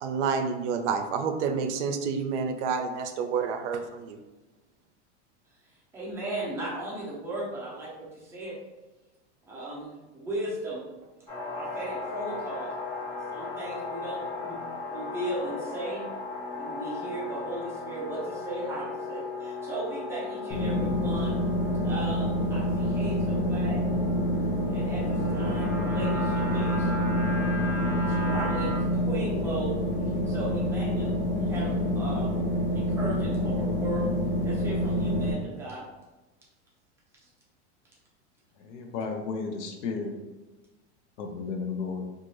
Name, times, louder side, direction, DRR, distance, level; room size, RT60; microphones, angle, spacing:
voice 1, 0.0-4.2, right 5 dB, 75° right, 7 dB, 0.5 m, -29 dB
voice 2, 5.9-8.6 9.5-10.8 11.5-12.7 13.3-14.6 14.9-16.1 16.5-21.4 21.8-23.8 24.7-26.9 28.1-29.8 30.3-32.4 32.7-34.1 34.4-35.8 37.2-37.3, right 1 dB, 10° right, -6 dB, 0.3 m, -36 dB
sound 1, 11.3-28.8, left 2 dB, 15° left, 1.0 m, -37 dB
sound 2, 20.5-35.3, equal, 30° left, 0.6 m, -27 dB
voice 3, 38.6-40.2 41.2-42.1, left 4 dB, 80° left, 3 dB, 0.7 m, -33 dB
2.6 x 2.4 x 3.0 m, 1.1 s
supercardioid pair, 155°, 35 cm